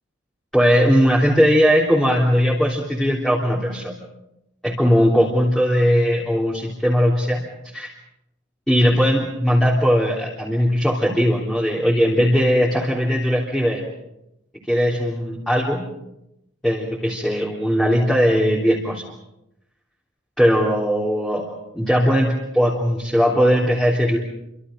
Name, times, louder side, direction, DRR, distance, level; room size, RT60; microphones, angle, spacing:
voice 1, 0.5-4.0 4.6-7.4 7.7-7.9 8.7-13.8 14.7-15.8 16.6-19.0 20.4-21.5 21.7-24.2, equal, 5° left, -4 dB, 3.4 m, -19 dB
29.5 x 25.5 x 5.2 m, 0.85 s
head